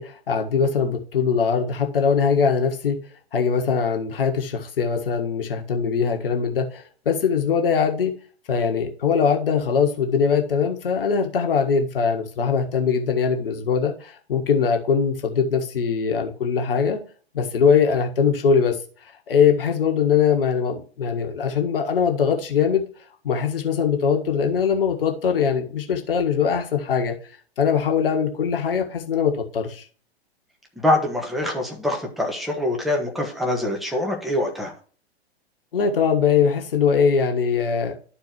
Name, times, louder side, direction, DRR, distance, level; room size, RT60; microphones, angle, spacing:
voice 1, 0.0-3.0 3.3-8.1 8.5-17.0 17.3-18.8 19.3-22.8 23.2-27.1 27.6-29.8 35.7-38.0, left 6 dB, 60° left, 3 dB, 1.6 m, -21 dB
voice 2, 30.8-34.7, left 1 dB, ahead, 1 dB, 1.6 m, -24 dB
12.5 x 4.5 x 3.1 m, 0.41 s
figure-of-eight pair, 105°, 32 cm